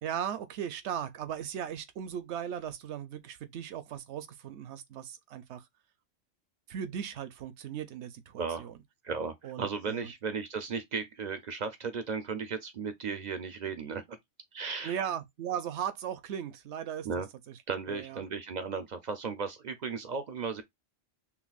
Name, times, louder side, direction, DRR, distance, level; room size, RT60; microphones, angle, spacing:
voice 1, 0.0-5.7 6.7-8.7 9.4-10.1 14.8-17.6 17.9-18.2, right 9 dB, 75° right, 0.9 m, -37 dB
voice 2, 8.4-8.7 9.0-14.2 14.5-15.0 17.0-17.3 17.7-20.6, right 5 dB, 55° right, 0.5 m, -35 dB
5.8 x 2.1 x 2.3 m
omnidirectional pair, 1.2 m